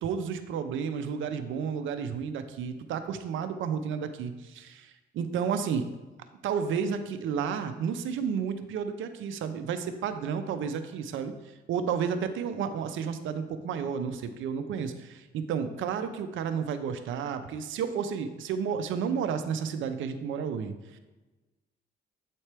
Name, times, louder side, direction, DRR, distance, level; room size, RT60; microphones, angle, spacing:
voice 1, 0.0-5.9 6.4-11.3 11.7-21.0, right 7 dB, 80° right, 9 dB, 0.6 m, -32 dB
8.3 x 4.3 x 3.4 m, 1.1 s
cardioid pair, 90°, 20 cm